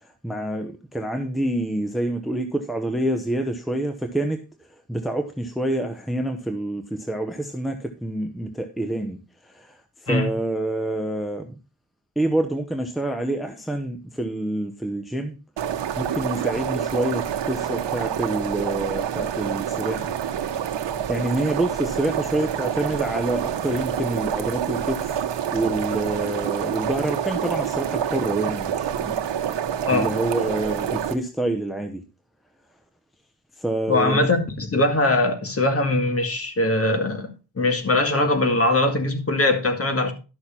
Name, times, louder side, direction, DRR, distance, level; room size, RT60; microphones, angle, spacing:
voice 1, 0.2-4.4 4.9-11.5 12.2-15.4 16.0-20.2 20.8-25.1 25.5-29.2 29.9-32.0 33.6-34.3, right 1 dB, ahead, 0.9 m, -27 dB
sound 1, 15.6-31.1, right 9 dB, 85° right, 1.3 m, -27 dB
voice 2, 33.9-37.3 37.6-40.1, left 2 dB, 35° left, 1.9 m, -21 dB
12.0 x 6.5 x 4.3 m
wide cardioid pair, 135°, 42 cm